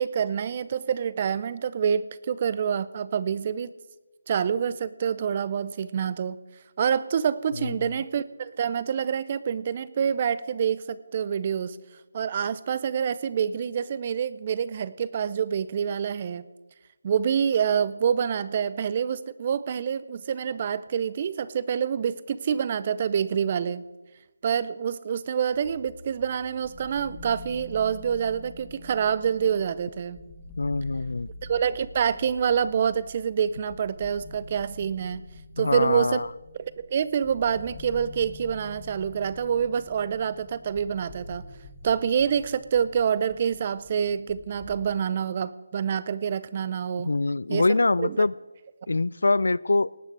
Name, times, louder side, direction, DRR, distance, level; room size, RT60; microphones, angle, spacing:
voice 1, 0.0-3.7 4.3-6.4 6.8-11.8 12.1-16.5 17.0-23.8 24.4-30.2 31.4-35.2 35.6-36.2 36.6-41.4 41.8-47.1 47.5-47.7 48.0-48.3, right 7 dB, 35° right, 17 dB, 0.6 m, -27 dB
voice 2, 7.6-7.9 30.6-31.3 35.6-36.3 47.0-48.3 48.9-49.9, left 3 dB, 80° left, 22 dB, 0.3 m, -24 dB
sound 1, 25.5-44.9, left 2 dB, 20° left, 2.1 m, -46 dB
18.5 x 8.9 x 4.7 m, 1.1 s
figure-of-eight pair, 160°, 0 cm